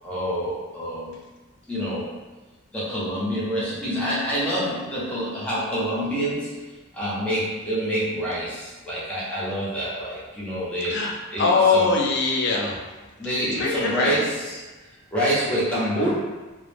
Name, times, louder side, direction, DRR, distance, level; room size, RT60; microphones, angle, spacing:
voice 1, 0.0-1.1 1.7-2.2 2.7-11.0 11.3-11.9 13.2-16.1, equal, 5° left, -9 dB, 0.6 m, -27 dB
voice 2, 10.9-12.8 13.5-14.2, left 4 dB, 50° left, -1 dB, 0.4 m, -22 dB
2.2 x 2.0 x 3.2 m, 1.2 s
head